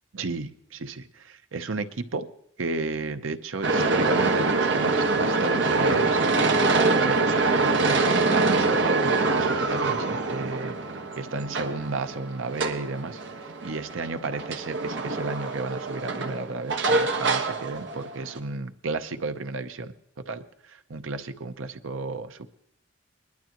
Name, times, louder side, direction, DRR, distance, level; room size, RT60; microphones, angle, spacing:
voice 1, 0.1-2.3 2.6-10.8 11.1-22.5, right 3 dB, 90° right, 9 dB, 0.7 m, -33 dB
sound 1, 3.6-18.4, right 3 dB, 65° right, 1.3 m, -25 dB
20.5 x 11.5 x 3.0 m, 0.73 s
head